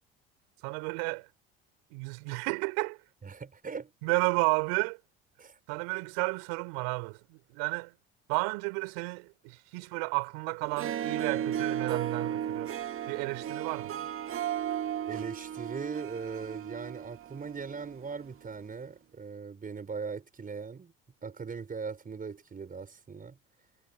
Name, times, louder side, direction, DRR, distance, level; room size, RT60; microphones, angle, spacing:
voice 1, 0.6-1.3 1.9-3.0 4.0-5.0 5.7-7.9 8.3-12.8 13.1-14.1, right 34 dB, 75° right, 4.8 m, -32 dB
voice 2, 3.2-3.9 5.4-5.6 15.1-20.9 21.2-23.4, right 5 dB, 30° right, 5.3 m, -39 dB
Harp, 10.6-18.1, right 10 dB, 45° right, 2.2 m, -35 dB
hypercardioid pair, 70°, 29 cm